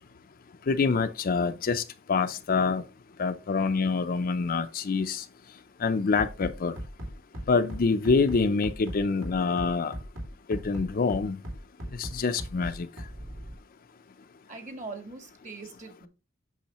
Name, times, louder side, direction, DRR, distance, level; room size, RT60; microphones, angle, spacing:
voice 1, 0.7-1.8 2.1-2.8 3.2-5.2 5.8-6.8 7.5-9.9 10.5-11.4 11.9-12.9, left 4 dB, 45° left, 0.5 m, -26 dB
Bass drum, 6.2-13.6, equal, 70° right, 2.5 m, -38 dB
voice 2, 14.5-16.1, right 3 dB, 35° right, 1.5 m, -41 dB
8.4 x 6.2 x 3.0 m
head